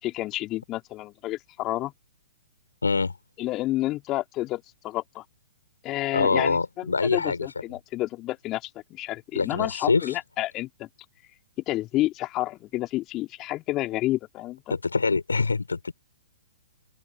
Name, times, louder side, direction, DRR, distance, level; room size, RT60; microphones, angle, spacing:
voice 1, 0.0-1.9 3.4-5.2 5.8-10.9 11.7-14.8, left 16 dB, 30° left, 4.0 m, -30 dB
voice 2, 2.8-3.1 6.1-7.5 9.3-10.1 14.7-15.9, left 4 dB, 80° left, 6.1 m, -24 dB
open air
figure-of-eight pair, 120°, 0 cm